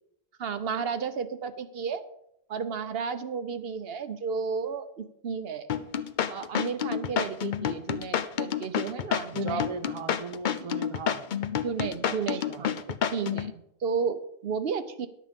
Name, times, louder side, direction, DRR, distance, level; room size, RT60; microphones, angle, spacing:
voice 1, 0.4-2.0 2.5-5.7 6.3-9.9 10.6-10.7 11.6-12.8 13.1-15.1, right 6 dB, 70° right, 10 dB, 0.9 m, -33 dB
sound 1, 5.7-13.5, left 9 dB, 55° left, 0.7 m, -29 dB
voice 2, 9.3-11.2 12.0-12.7, right 5 dB, 35° right, 10 dB, 0.6 m, -38 dB
11.0 x 7.6 x 5.2 m, 0.76 s
omnidirectional pair, 1.1 m